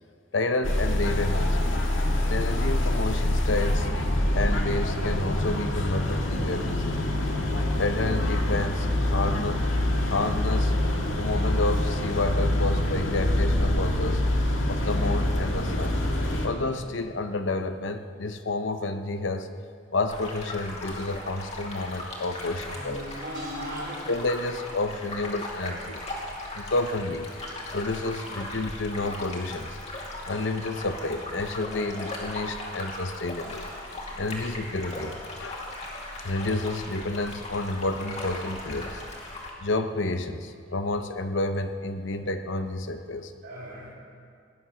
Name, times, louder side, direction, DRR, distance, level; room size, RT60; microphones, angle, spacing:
voice 1, 0.3-1.8 2.3-3.9 4.3-7.2 7.8-9.7 10.0-10.7 11.2-14.2 14.7-16.0 16.4-19.5 19.9-23.1 24.1-26.0 26.5-27.3 27.7-29.8 30.3-33.7 34.1-35.7 36.2-39.0 39.6-43.3, left 2 dB, 70° left, 8 dB, 0.8 m, -30 dB
sound 1, 0.6-16.5, left 1 dB, 85° left, 1.8 m, -25 dB
sound 2, 20.1-39.5, left 1 dB, 35° left, 2.4 m, -38 dB
voice 2, 22.6-23.9 43.4-43.9, equal, 60° right, -5 dB, 4.3 m, -37 dB
18.5 x 10.5 x 6.3 m, 2.3 s
head